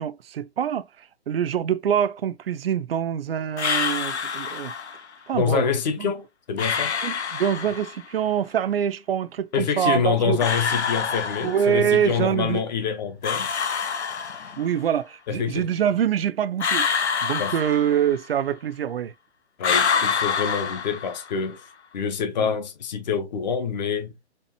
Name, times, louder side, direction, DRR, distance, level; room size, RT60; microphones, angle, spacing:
voice 1, 0.0-4.7 5.3-5.7 6.0-6.1 7.0-10.4 11.4-12.6 14.6-16.9 17.2-19.1 22.4-22.5, right 9 dB, 60° right, 0.5 m, -25 dB
sound 1, 3.6-5.1 6.6-8.1 10.4-11.9 13.2-14.8 16.6-18.3 19.6-21.5, left 6 dB, 75° left, 0.7 m, -26 dB
voice 2, 5.3-6.9 9.5-13.5 15.3-15.7 17.4-17.5 19.6-21.6 21.9-24.2, left 6 dB, 40° left, 0.8 m, -26 dB
4.3 x 2.5 x 2.8 m
figure-of-eight pair, 125°, 34 cm